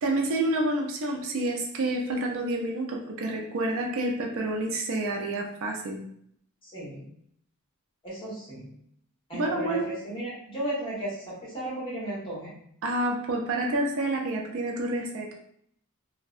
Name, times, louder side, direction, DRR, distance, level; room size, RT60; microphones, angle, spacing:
voice 1, 0.0-6.0 9.3-9.9 12.8-15.3, right 2 dB, 60° right, 1 dB, 0.4 m, -28 dB
voice 2, 6.6-7.0 8.0-8.7 9.3-12.5, right 1 dB, 25° left, -7 dB, 1.2 m, -35 dB
2.6 x 2.1 x 2.4 m, 0.68 s
head